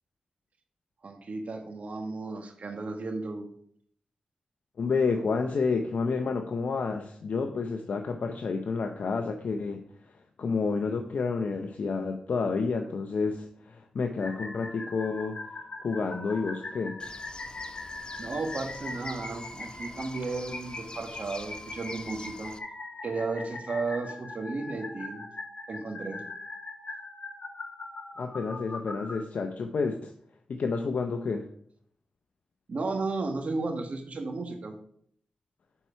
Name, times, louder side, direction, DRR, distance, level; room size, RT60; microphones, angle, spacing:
voice 1, 1.0-3.5 18.2-22.5 23.0-25.3 25.7-26.2 32.7-34.8, right 3 dB, 60° right, 4 dB, 1.6 m, -34 dB
voice 2, 4.8-10.1 10.4-15.4 15.8-17.0 28.2-30.1 30.5-31.5, left 4 dB, 75° left, 6 dB, 0.6 m, -30 dB
sound 1, 14.2-29.2, left 2 dB, 55° left, 1.5 m, -41 dB
Bird, 17.0-22.6, left 2 dB, 35° left, 0.8 m, -47 dB
7.3 x 4.5 x 5.7 m, 0.63 s
cardioid pair, 50°, 3 cm